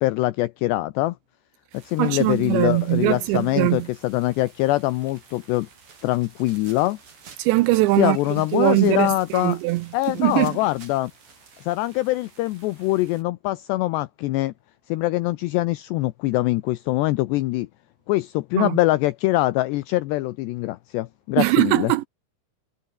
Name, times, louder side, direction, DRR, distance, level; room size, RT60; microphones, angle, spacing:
voice 1, 0.0-1.2 1.7-5.7 6.0-7.0 8.0-9.6 9.9-11.1 11.6-14.5 14.9-17.7 18.1-21.9, left 18 dB, 80° left, 2.6 m, -23 dB
sound 1, 1.7-13.2, right 4 dB, 60° right, 10.5 m, -53 dB
voice 2, 2.0-3.9 7.4-8.2 8.5-9.9 10.1-10.6 18.6-18.8 21.4-22.1, right 19 dB, 85° right, 2.7 m, -21 dB
sound 2, 5.5-12.5, right 5 dB, 35° right, 3.2 m, -51 dB
omnidirectional pair, 5.6 m